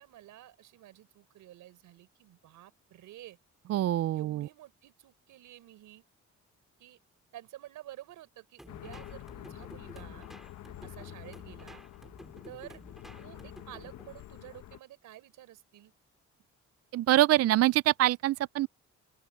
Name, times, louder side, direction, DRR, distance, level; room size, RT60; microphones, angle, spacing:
voice 1, 0.0-3.4 4.1-6.0 6.8-7.0 7.3-10.3 10.8-11.8 12.5-12.8 13.2-15.9, right 14 dB, 85° right, 4.2 m, -51 dB
voice 2, 3.7-4.5 16.9-18.7, right 14 dB, 55° right, 0.4 m, -25 dB
sound 1, 8.6-14.1, equal, ahead, 2.7 m, -52 dB
sound 2, 8.7-14.8, left 13 dB, 70° left, 1.1 m, -47 dB
open air
cardioid pair, 90°, 30 cm